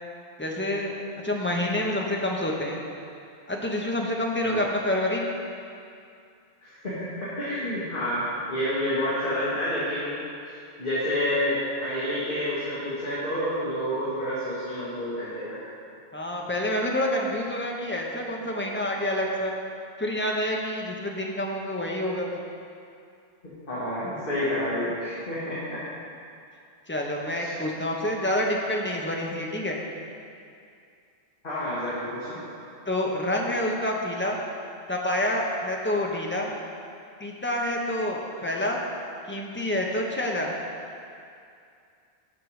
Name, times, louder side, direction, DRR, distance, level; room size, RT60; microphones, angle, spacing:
voice 1, 0.4-0.9 1.2-2.8 3.5-5.3 16.1-19.5 20.0-22.4 26.9-29.8 32.9-34.4 34.9-36.5 37.2-38.8 39.3-40.5, left 1 dB, 10° left, -1 dB, 0.9 m, -27 dB
voice 2, 6.6-10.2 10.8-15.6 23.7-25.8 27.4-27.5 31.4-32.4, left 1 dB, 50° left, -11 dB, 2.0 m, -29 dB
13.5 x 4.7 x 4.9 m, 2.4 s
omnidirectional pair, 1.1 m